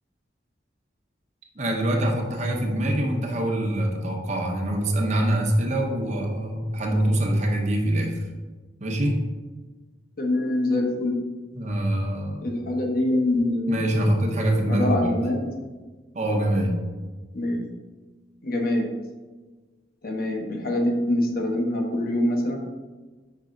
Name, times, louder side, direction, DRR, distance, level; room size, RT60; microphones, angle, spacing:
voice 1, 1.6-8.2 8.8-9.2 11.5-12.4 13.7-15.1 16.1-16.8, right 1 dB, 40° right, 1 dB, 0.9 m, -24 dB
voice 2, 10.2-11.2 12.4-14.2 14.7-15.5 17.3-17.6 18.4-18.9 20.0-22.6, left 1 dB, 55° left, 1 dB, 1.0 m, -24 dB
5.5 x 5.1 x 3.8 m, 1.3 s
head